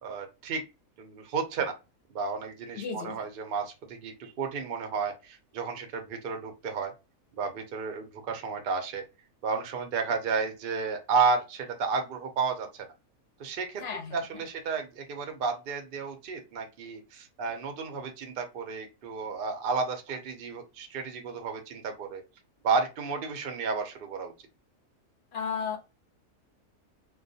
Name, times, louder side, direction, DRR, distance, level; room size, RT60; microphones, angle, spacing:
voice 1, 0.0-0.6 1.0-1.7 2.1-6.9 7.3-9.0 9.4-12.9 13.4-13.8 14.1-22.2 22.6-24.3, right 5 dB, 65° right, 5 dB, 0.5 m, -32 dB
voice 2, 2.8-3.3 13.8-14.2 25.3-25.8, left 6 dB, 60° left, 5 dB, 0.7 m, -34 dB
2.3 x 2.3 x 2.6 m, 0.27 s
omnidirectional pair, 1.5 m